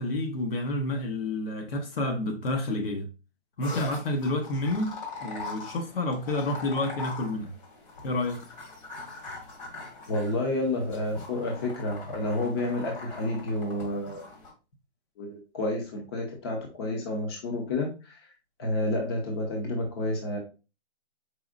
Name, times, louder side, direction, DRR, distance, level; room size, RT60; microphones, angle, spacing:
voice 1, 0.0-3.1 3.6-5.0 5.2-7.5 8.0-8.4, left 1 dB, 60° left, 1.1 m, -29 dB
sound 1, 3.6-14.5, left 4 dB, 40° left, 1.7 m, -42 dB
voice 2, 10.1-14.2 15.2-18.3 18.6-20.4, left 1 dB, 25° left, 0.7 m, -30 dB
4.8 x 4.1 x 2.4 m
hypercardioid pair, 155°, 33 cm